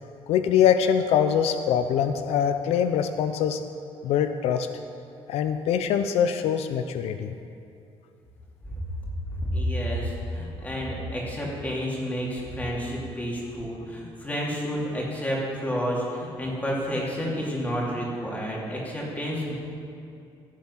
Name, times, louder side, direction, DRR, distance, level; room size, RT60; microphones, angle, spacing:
voice 1, 0.3-3.6 4.0-4.7 5.3-7.3, left 8 dB, 90° left, 9 dB, 0.5 m, -23 dB
voice 2, 9.3-19.6, equal, 15° left, -4 dB, 3.0 m, -30 dB
15.0 x 7.5 x 5.8 m, 2.6 s
cardioid pair, 125°, 10 cm